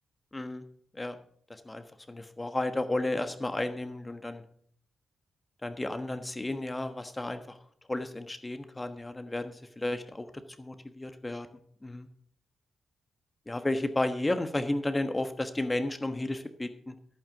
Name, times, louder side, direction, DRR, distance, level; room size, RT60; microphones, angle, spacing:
voice 1, 0.3-0.6 0.9-1.2 1.5-4.4 5.6-7.6 7.9-10.3 10.6-11.5 11.8-12.1 13.5-16.9, left 2 dB, 20° left, 8 dB, 1.3 m, -33 dB
11.0 x 9.2 x 5.8 m, 0.63 s
cardioid pair, 60°, 0 cm